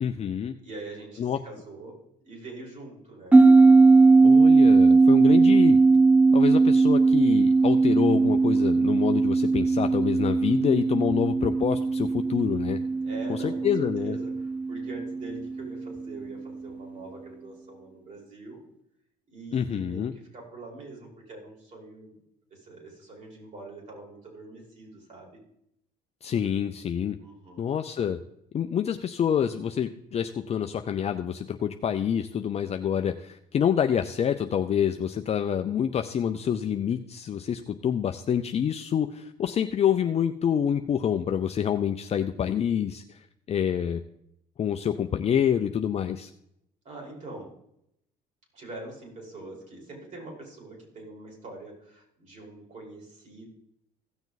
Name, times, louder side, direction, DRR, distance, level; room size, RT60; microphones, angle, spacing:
voice 1, 0.0-0.6 1.2-1.4 4.2-5.8 6.3-12.8 13.3-14.2 19.5-20.1 26.2-27.2 27.6-28.2 28.5-43.2 43.5-44.0 44.6-46.3, left 8 dB, 40° left, 6 dB, 0.6 m, -27 dB
voice 2, 0.6-2.0 2.2-3.4 5.2-5.6 13.0-18.6 19.3-22.2 22.5-25.4 27.2-27.7 46.8-47.5 48.5-53.5, right 2 dB, 45° right, -1 dB, 5.1 m, -44 dB
sound 1, 3.3-16.1, right 3 dB, 10° right, 0.3 m, -19 dB
16.0 x 7.0 x 4.1 m, 0.76 s
cardioid pair, 110°, 17 cm